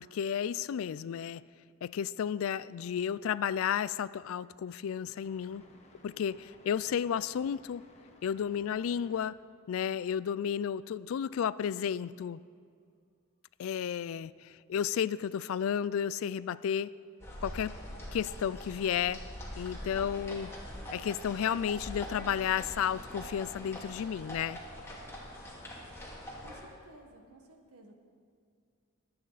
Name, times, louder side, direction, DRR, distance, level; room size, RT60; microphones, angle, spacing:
voice 1, 0.0-1.4 1.8-5.6 6.0-7.8 8.2-9.4 9.7-12.4 13.6-16.9 17.4-17.8 18.1-19.2 19.6-20.5 20.9-24.6, left 8 dB, 65° left, 18 dB, 0.3 m, -32 dB
sound 1, 5.2-9.2, left 1 dB, 30° left, 1.4 m, -59 dB
sound 2, 17.2-26.6, equal, 10° left, 2.2 m, -43 dB
voice 2, 26.4-28.1, right 1 dB, 90° right, 4 dB, 1.5 m, -55 dB
22.5 x 8.8 x 4.1 m, 2.2 s
head